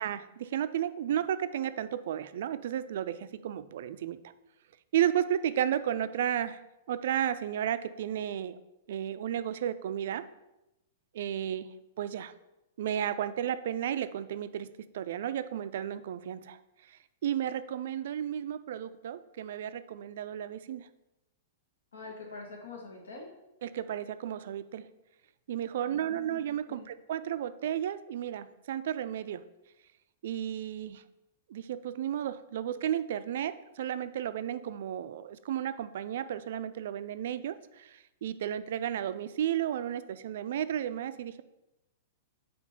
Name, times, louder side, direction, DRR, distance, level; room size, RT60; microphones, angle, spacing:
voice 1, 0.0-4.2 4.9-6.6 6.9-8.6 8.9-10.3 11.1-11.7 12.0-12.3 12.8-16.6 16.9-20.9 23.6-24.9 25.5-29.4 30.2-31.0 31.5-41.4, right 10 dB, 60° right, 13 dB, 0.3 m, -33 dB
voice 2, 21.9-23.3 25.9-26.4 26.7-26.9, left 4 dB, 75° left, 1 dB, 1.4 m, -45 dB
5.2 x 4.4 x 5.1 m, 0.94 s
figure-of-eight pair, 105°, 0 cm